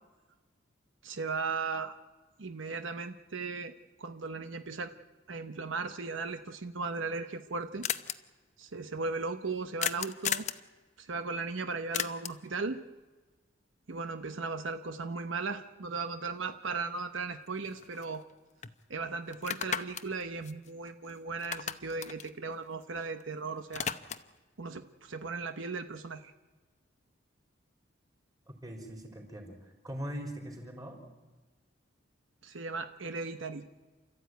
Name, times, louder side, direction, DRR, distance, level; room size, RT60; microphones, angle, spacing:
voice 1, 1.0-2.0 2.4-3.7 4.0-4.9 5.3-7.9 8.6-10.5 11.0-12.8 13.9-18.2 18.9-23.9 24.6-26.3 32.4-33.7, right 4 dB, 75° right, 9 dB, 0.9 m, -37 dB
sound 1, 7.1-7.2 7.4-7.5 7.8-8.1 9.8-10.6 11.9-12.5 16.7-16.8 17.2-18.3 18.6-18.7 19.3-21.1 21.4-23.2 23.5-24.4, left 8 dB, 35° left, 0.8 m, -36 dB
voice 2, 28.5-31.0, equal, 20° right, 2 dB, 4.1 m, -41 dB
29.0 x 14.0 x 9.3 m, 1.3 s
head